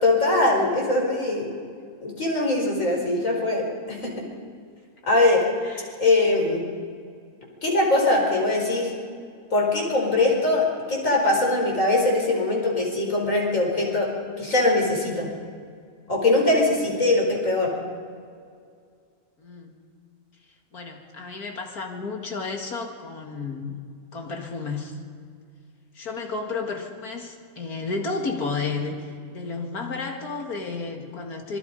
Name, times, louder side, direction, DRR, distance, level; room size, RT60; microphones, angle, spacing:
voice 1, 0.0-1.5 2.0-4.1 5.1-5.4 6.0-6.6 7.6-8.9 9.5-14.1 14.4-15.3 16.1-17.7, left 2 dB, 60° left, -1 dB, 5.2 m, -22 dB
voice 2, 5.6-6.0 19.4-19.7 20.7-23.8 24.1-25.0 25.9-31.6, left 4 dB, 80° left, 2 dB, 2.6 m, -32 dB
26.5 x 21.0 x 5.3 m, 2.2 s
omnidirectional pair, 1.6 m